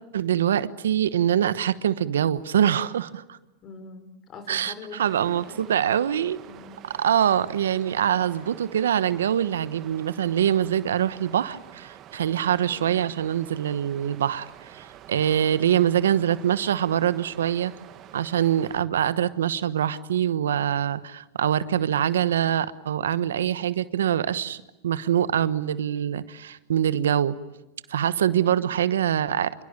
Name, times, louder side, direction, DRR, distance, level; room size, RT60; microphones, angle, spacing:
voice 1, 0.1-3.4 4.5-6.4 6.8-17.7 18.1-24.6 24.8-27.3 27.9-29.6, right 10 dB, 85° right, 15 dB, 1.1 m, -24 dB
voice 2, 3.6-5.9 6.4-6.8 12.7-13.0 28.3-28.6, left 4 dB, 35° left, 10 dB, 5.2 m, -44 dB
Water, 5.0-18.8, right 11 dB, 40° right, 2.0 m, -47 dB
27.5 x 23.5 x 8.9 m, 0.97 s
hypercardioid pair, 110°, 0 cm